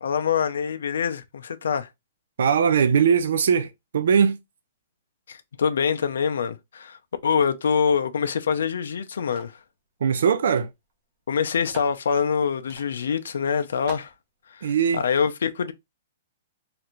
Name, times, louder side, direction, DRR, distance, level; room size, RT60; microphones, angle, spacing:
voice 1, 0.0-1.9 5.3-7.0 7.2-9.6 11.3-14.1 14.5-15.7, left 6 dB, 85° left, 0.4 m, -25 dB
voice 2, 2.4-4.4 10.0-10.7 14.6-15.0, right 7 dB, 70° right, 0.4 m, -20 dB
sound 1, 9.3-9.6 10.5-10.6 10.9-11.0 11.7-12.0 12.7-12.9 13.3-13.4 13.9-14.1, right 3 dB, 30° right, 0.8 m, -41 dB
3.2 x 2.5 x 2.9 m
hypercardioid pair, 175°, 0 cm